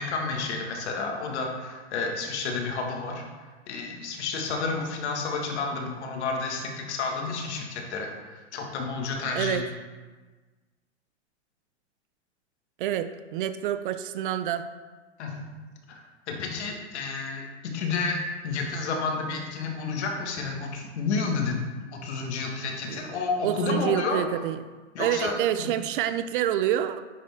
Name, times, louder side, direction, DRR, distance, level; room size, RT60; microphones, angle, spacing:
voice 1, 0.0-3.2 3.7-9.7 15.2-15.5 15.9-18.2 18.4-21.6 21.9-24.2 24.9-25.7, left 4 dB, 70° left, 1 dB, 1.7 m, -30 dB
voice 2, 12.8-14.7 22.9-23.0 23.4-24.6 25.0-27.0, right 11 dB, 50° right, 12 dB, 0.4 m, -27 dB
10.0 x 4.3 x 3.5 m, 1.3 s
hypercardioid pair, 140°, 35 cm